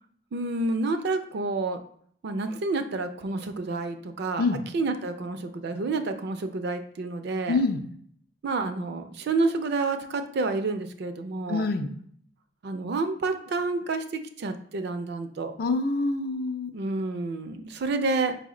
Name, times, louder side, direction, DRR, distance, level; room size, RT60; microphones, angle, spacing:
voice 1, 0.3-1.8 2.2-7.6 8.4-11.7 12.6-15.5 16.7-18.4, right 3 dB, 60° right, 8 dB, 0.4 m, -29 dB
voice 2, 7.5-7.8 11.5-11.9 15.6-16.7, left 3 dB, 55° left, 7 dB, 0.4 m, -26 dB
5.0 x 2.0 x 3.6 m, 0.62 s
head